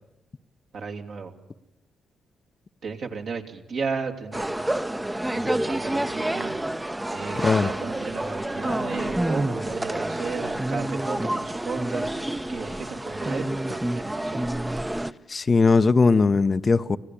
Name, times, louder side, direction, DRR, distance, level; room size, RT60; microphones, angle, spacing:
voice 1, 0.7-1.3 2.8-4.5 5.3-6.5 7.1-12.1 12.5-14.5, right 5 dB, 65° right, 2.8 m, -34 dB
sound 1, 4.3-15.1, right 1 dB, 15° right, 0.8 m, -28 dB
voice 2, 7.3-7.7 15.3-17.0, left 4 dB, 40° left, 0.8 m, -19 dB
25.5 x 16.5 x 8.5 m
hypercardioid pair, 45°, 0 cm